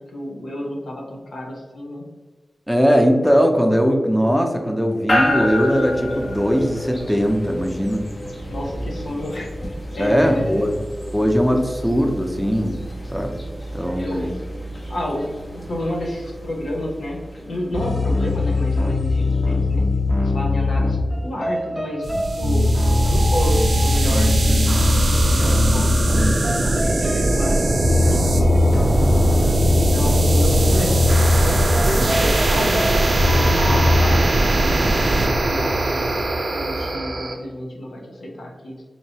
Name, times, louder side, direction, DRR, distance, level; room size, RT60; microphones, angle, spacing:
voice 1, 0.1-2.0 8.5-9.5 9.9-10.8 13.9-14.4 14.9-15.2 15.5-19.9 20.2-22.7 23.0-29.1 29.7-30.9 31.3-32.9 33.2-36.1 36.5-38.8, left 1 dB, 80° left, -1 dB, 0.8 m, -30 dB
voice 2, 2.7-8.0 10.0-10.7 11.1-12.8 13.1-13.4 13.7-14.3, equal, ahead, 3 dB, 0.7 m, -19 dB
sound 1, 5.1-19.4, left 1 dB, 50° left, 1.3 m, -30 dB
sound 2, 17.7-34.1, left 2 dB, 30° left, 1.1 m, -21 dB
sound 3, 22.0-37.3, right 2 dB, 65° right, 0.7 m, -20 dB
4.4 x 2.9 x 2.8 m, 1.4 s
cardioid pair, 40°, 0 cm